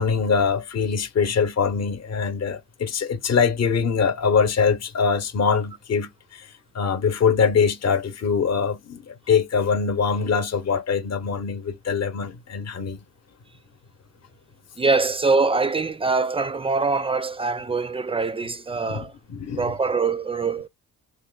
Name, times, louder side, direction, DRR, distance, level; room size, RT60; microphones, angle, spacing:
voice 1, 0.0-13.0 18.9-19.7, left 6 dB, 45° left, 0.8 m, -23 dB
voice 2, 14.8-19.1 19.6-20.7, right 4 dB, 15° right, 0.3 m, -23 dB
2.9 x 2.2 x 3.8 m
cardioid pair, 65°, 38 cm